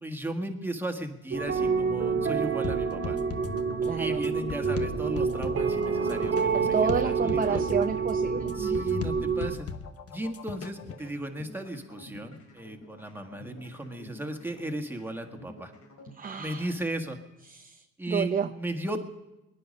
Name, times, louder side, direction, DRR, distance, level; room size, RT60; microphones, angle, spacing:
voice 1, 0.0-3.2 3.9-7.6 8.6-9.7 10.1-15.7 16.4-17.2 18.0-19.0, right 1 dB, 5° right, 4 dB, 1.7 m, -36 dB
sound 1, 1.3-9.6, right 5 dB, 45° right, 1.6 m, -28 dB
sound 2, 2.6-11.1, left 6 dB, 50° left, 1.1 m, -38 dB
voice 2, 3.8-4.2 6.5-8.9 16.1-16.7 17.5-18.5, right 6 dB, 30° right, 7 dB, 0.6 m, -30 dB
sound 3, 10.8-16.8, left 1 dB, 70° left, 3.0 m, -50 dB
20.5 x 10.0 x 5.4 m, 0.97 s
cardioid pair, 90°, 30 cm